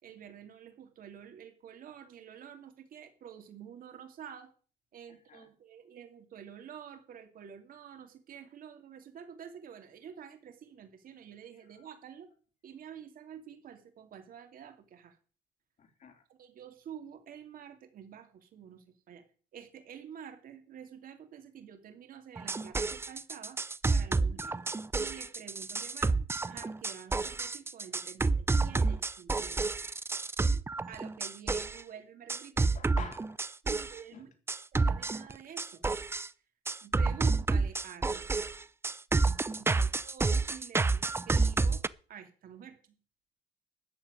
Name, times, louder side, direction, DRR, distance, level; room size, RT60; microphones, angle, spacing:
voice 1, 0.0-4.5 4.9-12.3 12.6-15.2 16.3-19.2 19.5-23.6 23.9-24.5 25.0-26.2 26.5-29.7 30.9-33.0 33.6-34.3 34.7-35.8 36.8-38.4 39.6-41.8 42.1-42.8, right 8 dB, 55° right, 6 dB, 2.9 m, -49 dB
voice 2, 15.8-16.2 24.2-24.6 28.2-28.3 32.7-33.4 34.1-34.2 39.5-39.9, left 6 dB, 45° left, 5 dB, 3.3 m, -49 dB
sound 1, 22.4-31.8 32.3-34.0 34.5-36.3 36.7-41.9, right 3 dB, 15° right, 0.5 m, -29 dB
13.5 x 6.2 x 9.8 m, 0.41 s
cardioid pair, 110°, 17 cm